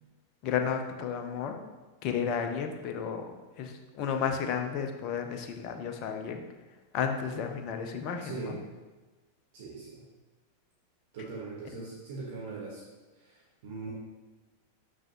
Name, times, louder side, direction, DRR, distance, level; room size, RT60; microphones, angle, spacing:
voice 1, 0.4-1.6 2.0-6.4 6.9-8.6, left 7 dB, 40° left, 5 dB, 0.7 m, -32 dB
voice 2, 8.2-8.6 9.5-10.0 11.1-12.8 13.2-13.9, right 4 dB, 55° right, -4 dB, 1.2 m, -40 dB
6.6 x 6.3 x 3.0 m, 1.2 s
figure-of-eight pair, 90°, 0 cm